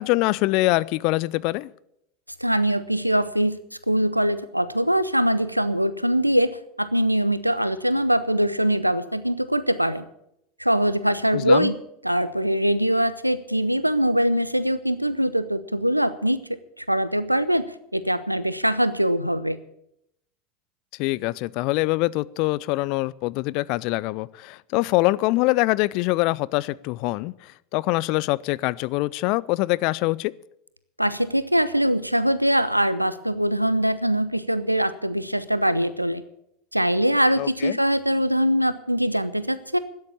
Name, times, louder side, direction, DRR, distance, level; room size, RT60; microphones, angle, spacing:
voice 1, 0.0-1.7 11.3-11.7 21.0-30.3 37.4-37.8, left 20 dB, 45° left, 20 dB, 0.4 m, -24 dB
voice 2, 2.4-3.6 3.9-10.1 10.6-11.8 12.0-16.4 16.8-17.6 17.9-19.6 31.0-36.2 36.7-39.8, equal, 90° right, 15 dB, 0.7 m, -22 dB
12.5 x 9.6 x 8.7 m, 0.79 s
figure-of-eight pair, 80°, 0 cm